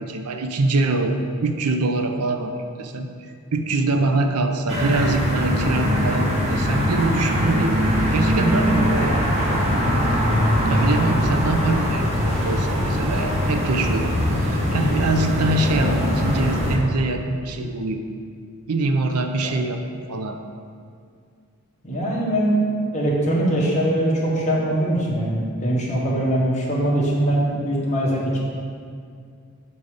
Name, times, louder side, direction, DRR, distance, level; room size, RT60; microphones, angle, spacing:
voice 1, 0.0-3.1 3.5-7.8 8.1-9.3 10.7-14.1 14.4-18.0 18.7-20.4, right 2 dB, 85° right, 6 dB, 0.6 m, -24 dB
sound 1, 4.7-16.8, equal, 30° right, 1.2 m, -22 dB
voice 2, 10.2-10.9 19.4-19.5 21.8-22.6 22.9-28.4, right 1 dB, 35° left, -4 dB, 1.3 m, -22 dB
7.1 x 4.0 x 4.9 m, 2.2 s
head